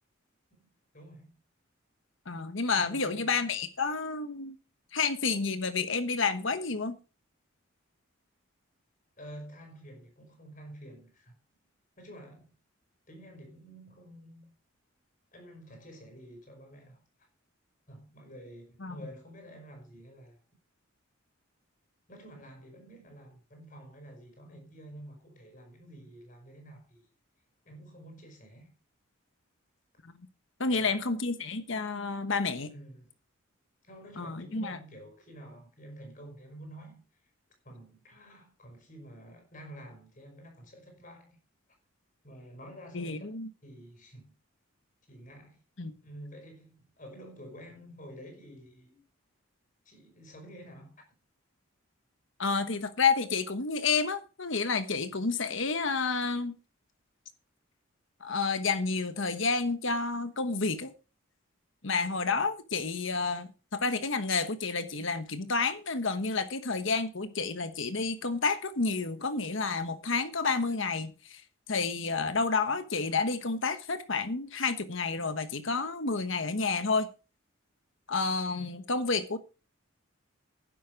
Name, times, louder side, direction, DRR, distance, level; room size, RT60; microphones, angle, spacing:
voice 1, 0.9-1.4 2.7-3.5 9.2-11.3 12.0-12.5 13.1-14.5 15.3-17.0 17.9-20.4 22.1-27.1 27.7-28.7 30.6-31.2 32.7-33.1 33.8-37.0 37.6-41.4 42.2-43.3 43.6-44.3 45.1-45.6 46.0-49.0 49.9-51.0 78.5-78.7, right 1 dB, 40° left, 5.5 m, -49 dB
voice 2, 2.3-4.6 4.9-7.0 18.8-19.0 30.6-32.7 34.2-34.8 42.9-43.5 45.8-45.9 52.4-56.6 58.2-60.9 61.8-71.4 71.7-77.1 78.1-79.4, left 4 dB, 65° left, 1.2 m, -30 dB
12.0 x 10.5 x 4.7 m
head